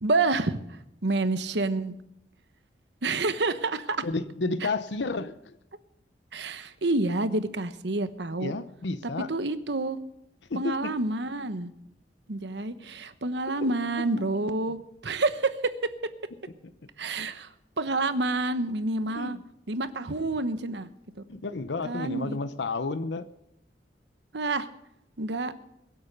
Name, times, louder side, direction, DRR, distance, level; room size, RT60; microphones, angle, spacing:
voice 1, 0.0-1.9 3.0-4.0 4.6-4.7 6.3-8.5 9.3-10.0 10.5-11.7 12.3-14.8 15.0-15.9 17.0-19.4 19.7-20.9 21.8-22.4 24.3-24.7 25.2-25.5, right 2 dB, 75° right, 12 dB, 1.1 m, -28 dB
voice 2, 4.0-5.5 8.4-9.3 10.5-10.9 13.5-13.7 17.2-17.3 19.1-19.4 21.3-23.3, left 3 dB, 85° left, 12 dB, 0.7 m, -31 dB
22.0 x 8.0 x 6.7 m, 0.81 s
head